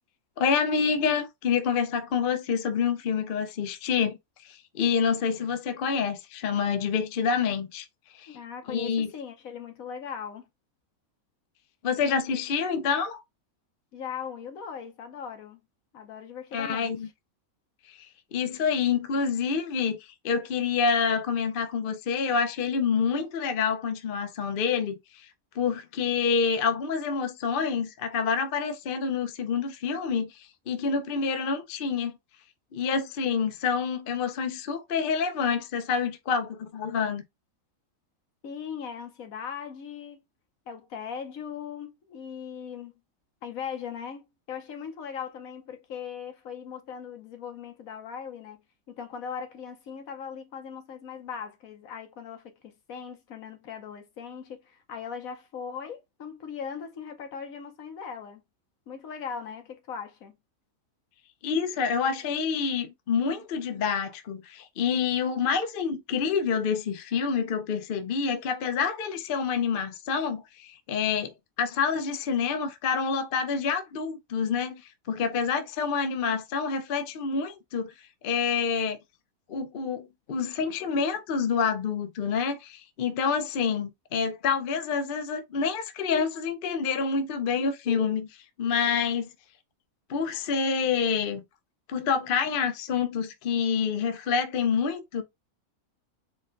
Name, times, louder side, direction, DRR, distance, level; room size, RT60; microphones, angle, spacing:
voice 1, 0.4-4.2 4.4-7.9 8.1-8.4 8.7-9.1 11.8-13.2 16.5-17.1 17.9-25.3 25.6-32.2 32.7-37.2 61.4-71.3 71.6-77.9 78.2-79.0 79.5-89.3 90.1-91.4 91.9-95.2, left 6 dB, 55° left, 0.6 m, -27 dB
voice 2, 8.3-10.4 13.9-15.6 15.9-17.0 38.4-40.2 40.7-43.0 43.4-48.6 48.9-58.4 58.9-60.4, left 7 dB, 70° left, 1.2 m, -39 dB
4.3 x 2.2 x 3.7 m
omnidirectional pair, 1.5 m